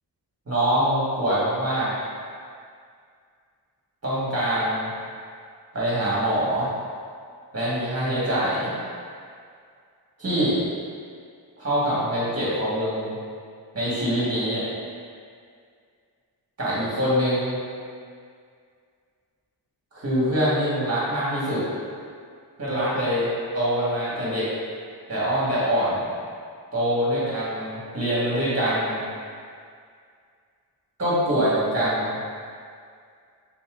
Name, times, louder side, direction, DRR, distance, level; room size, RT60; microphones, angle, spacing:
voice 1, 0.5-1.9 4.0-4.9 5.7-6.7 7.5-8.7 10.2-10.6 11.6-13.2 13.7-14.7 16.6-17.6 19.9-21.6 22.6-24.5 25.1-26.1 26.7-29.0 31.0-32.2, equal, 35° right, -8 dB, 1.4 m, -24 dB
4.2 x 3.9 x 2.4 m, 2.2 s
wide cardioid pair, 100°, 42 cm